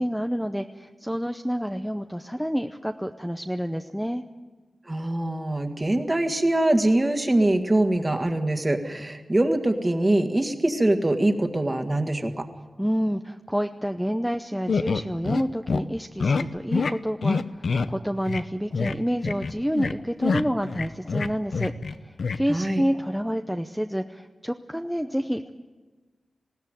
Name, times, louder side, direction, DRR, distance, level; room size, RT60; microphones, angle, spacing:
voice 1, 0.0-4.2 12.8-21.7 22.0-25.5, equal, ahead, 6 dB, 0.7 m, -28 dB
voice 2, 4.9-12.3 22.5-22.8, right 1 dB, 20° right, 6 dB, 1.8 m, -23 dB
sound 1, 14.7-15.4 15.7-15.8 16.2-16.4 16.7-16.9 17.2-17.9 18.3-18.4 18.7-18.9 19.2-19.9 20.2-21.9 22.2-22.4, left 4 dB, 70° left, 0.8 m, -25 dB
20.5 x 17.0 x 9.2 m, 1.3 s
wide cardioid pair, 130°, 0 cm